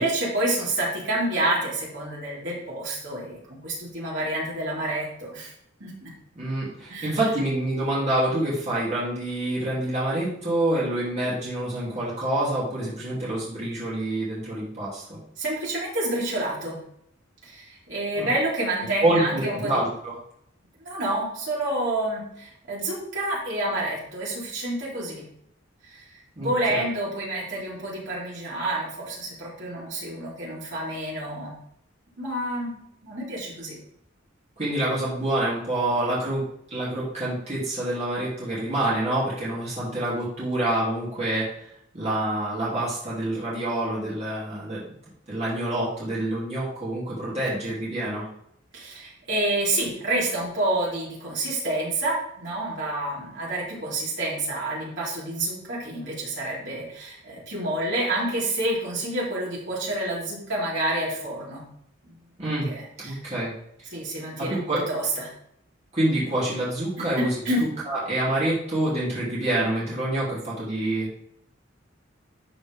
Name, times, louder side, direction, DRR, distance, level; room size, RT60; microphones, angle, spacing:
voice 1, 0.0-5.5 5.8-6.1 6.9-7.2 15.4-16.8 17.4-19.8 20.9-25.3 25.8-26.0 26.4-31.5 32.2-32.7 33.0-33.8 48.7-61.6 62.0-62.1 62.7-63.2 63.9-64.6 64.9-65.3 67.0-67.6, right 1 dB, 70° right, -6 dB, 3.4 m, -28 dB
voice 2, 6.4-15.2 18.1-18.3 19.0-20.1 26.4-26.8 34.6-36.4 36.7-44.8 45.3-48.2 62.4-62.7 63.0-63.5 63.8-63.9 64.4-64.8 65.9-67.4 67.9-71.2, right 1 dB, 35° right, -8 dB, 2.8 m, -27 dB
12.0 x 4.3 x 3.5 m, 0.73 s
head